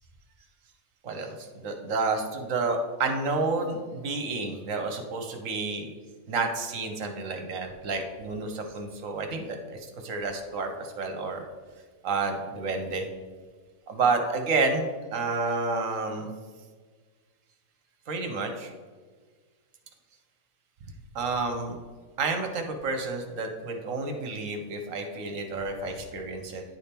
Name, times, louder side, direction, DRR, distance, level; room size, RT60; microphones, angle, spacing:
voice 1, 1.0-5.9 6.3-11.4 12.0-13.1 13.9-16.3 18.1-18.7 21.1-21.8 22.2-26.6, right 3 dB, 60° right, 4 dB, 1.1 m, -30 dB
9.9 x 3.5 x 4.3 m, 1.5 s
omnidirectional pair, 1.6 m